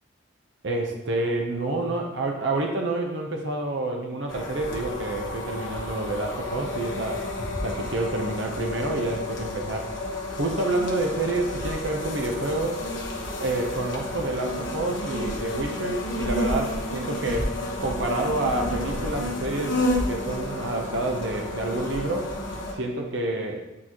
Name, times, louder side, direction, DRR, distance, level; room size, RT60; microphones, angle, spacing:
voice 1, 0.6-7.2 7.6-9.9 10.4-12.8 13.4-17.5 17.8-19.8 20.1-22.3 22.7-23.6, right 2 dB, 60° right, 1 dB, 0.8 m, -28 dB
sound 1, 4.3-22.7, left 1 dB, 65° left, 1.2 m, -31 dB
8.7 x 4.0 x 3.0 m, 0.97 s
head